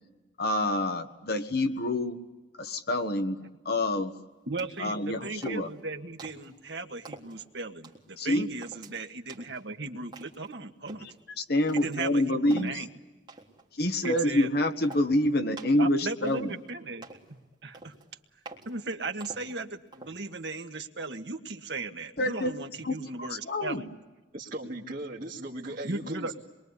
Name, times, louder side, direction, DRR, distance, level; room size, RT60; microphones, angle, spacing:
voice 1, 0.4-2.2 2.6-3.4 3.6-4.1 4.8-5.7 8.2-8.5 11.0-11.1 11.4-12.8 13.7-16.6 22.2-22.5 22.8-23.9, left 1 dB, 55° left, 7 dB, 1.5 m, -27 dB
voice 2, 4.5-11.1 11.7-12.9 14.0-14.5 15.8-17.9 18.6-23.9 25.8-26.4, right 3 dB, 65° right, 5 dB, 1.7 m, -37 dB
sound 1, 4.6-4.9 5.4-5.8 6.2-6.5 7.0-7.4 7.8-8.1 8.6-8.9 9.3-9.6 10.1-10.5 10.9-11.1 11.7-12.0 12.5-12.8 13.3-13.6 14.0-14.3 14.8-15.1 15.6-15.8 16.3-16.7 17.0-17.3 17.7-18.1 18.5-18.7 19.2-19.5 19.9-20.2, right 2 dB, 25° right, 3.6 m, -46 dB
voice 3, 24.3-26.4, right 1 dB, 45° right, -5 dB, 2.1 m, -38 dB
27.0 x 22.5 x 9.7 m, 1.2 s
head